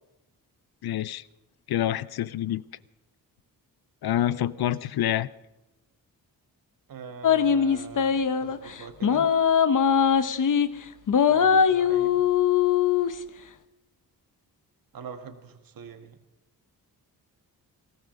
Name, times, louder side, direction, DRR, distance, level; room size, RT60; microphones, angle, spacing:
voice 1, 0.8-1.2 1.7-2.6 4.0-5.3, left 12 dB, 75° left, 17 dB, 0.6 m, -27 dB
voice 2, 4.5-4.9 6.9-9.3 11.3-12.2 14.9-16.2, right 6 dB, 65° right, 8 dB, 1.6 m, -43 dB
sound 1, 7.2-8.6 9.0-10.7 11.1-13.1, left 7 dB, 55° left, 1.0 m, -21 dB
20.0 x 14.0 x 5.3 m, 0.95 s
cardioid pair, 90°, 37 cm